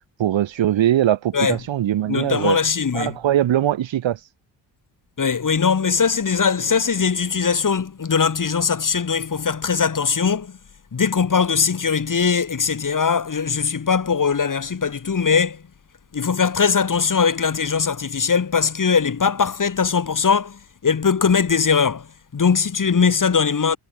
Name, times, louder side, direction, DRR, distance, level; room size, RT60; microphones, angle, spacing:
voice 1, 0.2-2.6 2.9-4.2, right 12 dB, 70° right, 1.9 m, -21 dB
voice 2, 2.1-3.2 5.2-10.6 10.9-15.6 16.1-22.1 22.3-23.8, left 6 dB, 40° left, 2.9 m, -20 dB
supercardioid pair, 60°, 47 cm